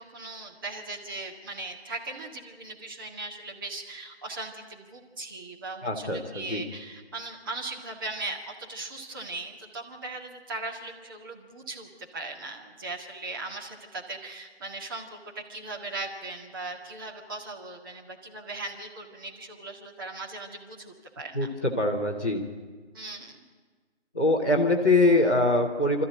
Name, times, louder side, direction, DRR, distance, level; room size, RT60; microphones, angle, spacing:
voice 1, 0.0-21.5 22.9-23.4, right 2 dB, 20° right, 0 dB, 1.8 m, -39 dB
voice 2, 5.8-6.6 21.3-22.4 24.1-26.0, left 2 dB, 10° left, -8 dB, 0.8 m, -23 dB
26.0 x 13.5 x 9.0 m, 1.4 s
figure-of-eight pair, 155°, 35 cm